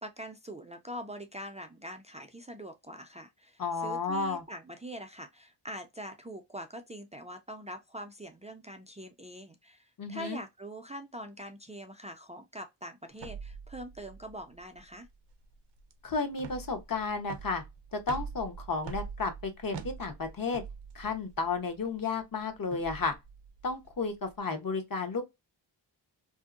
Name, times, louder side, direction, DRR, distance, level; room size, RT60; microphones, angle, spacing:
voice 1, 0.0-15.1, right 1 dB, 15° right, 0.5 m, -43 dB
voice 2, 3.6-4.4 10.0-10.4 16.0-17.6 17.9-20.6 20.9-23.1 23.6-25.2, left 4 dB, 50° left, 0.9 m, -32 dB
sound 1, 13.1-24.4, right 6 dB, 65° right, 0.6 m, -45 dB
2.7 x 2.0 x 2.4 m
cardioid pair, 55°, 45 cm